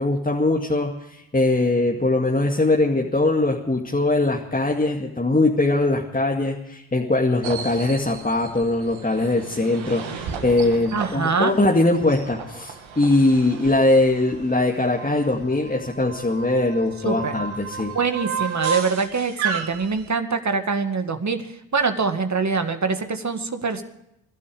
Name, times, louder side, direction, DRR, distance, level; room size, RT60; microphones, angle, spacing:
voice 1, 0.0-17.9, left 2 dB, 15° left, -1 dB, 2.1 m, -21 dB
sound 1, 7.4-20.1, right 6 dB, 65° right, 2.2 m, -34 dB
voice 2, 10.9-11.6 17.0-17.4 17.9-23.8, right 5 dB, 35° right, 7 dB, 2.1 m, -24 dB
21.5 x 12.5 x 5.1 m, 0.84 s
hypercardioid pair, 45°, 50 cm